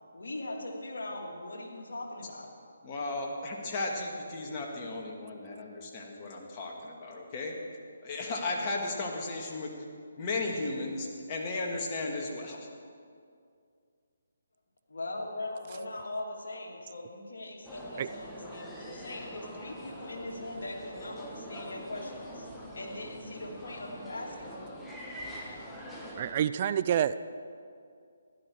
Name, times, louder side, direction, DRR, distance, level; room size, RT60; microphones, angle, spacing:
voice 1, 0.1-2.5 14.9-22.5 22.7-24.7, left 2 dB, 70° left, -1 dB, 2.8 m, -40 dB
voice 2, 2.8-7.5 8.0-9.7 10.2-12.7, left 2 dB, 30° left, 0 dB, 2.0 m, -35 dB
sound 1, 17.6-26.3, equal, 5° left, 1.5 m, -44 dB
voice 3, 26.2-27.2, right 10 dB, 35° right, 15 dB, 0.3 m, -27 dB
15.5 x 12.0 x 4.8 m, 2.3 s
figure-of-eight pair, 150°, 0 cm